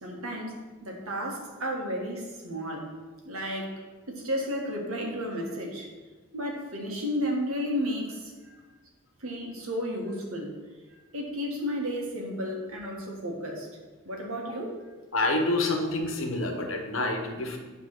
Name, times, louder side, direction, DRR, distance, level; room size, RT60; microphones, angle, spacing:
voice 1, 0.0-2.8 3.2-3.8 4.1-5.9 6.3-8.5 9.2-10.5 11.1-13.7 14.0-14.7, equal, 80° right, 0 dB, 1.6 m, -33 dB
voice 2, 15.1-17.6, left 2 dB, 65° left, 3 dB, 1.1 m, -27 dB
9.3 x 3.5 x 6.1 m, 1.3 s
head